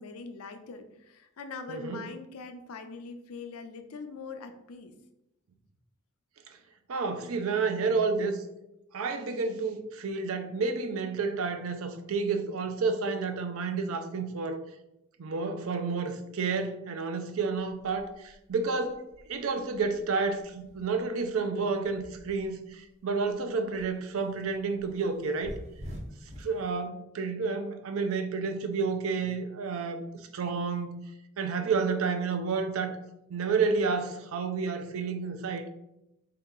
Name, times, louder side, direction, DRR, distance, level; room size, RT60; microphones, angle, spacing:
voice 1, 0.0-4.9, left 4 dB, 90° left, 0.5 m, -42 dB
voice 2, 1.7-2.1 6.9-8.4 8.9-14.6 15.2-25.6 26.4-30.0 30.3-31.0 31.4-33.0 33.3-35.7, right 4 dB, 75° right, 0.5 m, -30 dB
sound 1, 17.6-22.8 23.2-26.6, equal, 30° right, 0.6 m, -47 dB
3.5 x 2.8 x 3.7 m
head